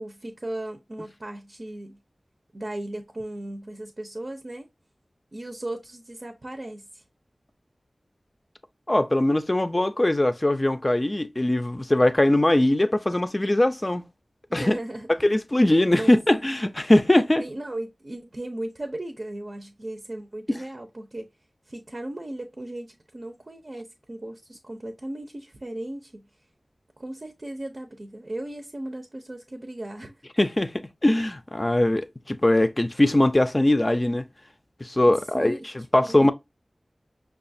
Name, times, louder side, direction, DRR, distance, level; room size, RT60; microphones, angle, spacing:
voice 1, 0.0-2.0 2.5-4.7 5.3-7.0 14.5-15.1 16.0-16.1 17.4-21.3 21.7-26.3 27.0-30.2 35.1-35.7 36.0-36.2, right 1 dB, 50° right, 0.6 m, -36 dB
voice 2, 8.9-14.1 14.5-14.8 15.2-17.4 20.5-20.6 30.4-30.7 31.0-34.2 34.8-36.3, left 1 dB, 30° left, 0.4 m, -21 dB
5.6 x 2.3 x 2.6 m
wide cardioid pair, 65°, 0 cm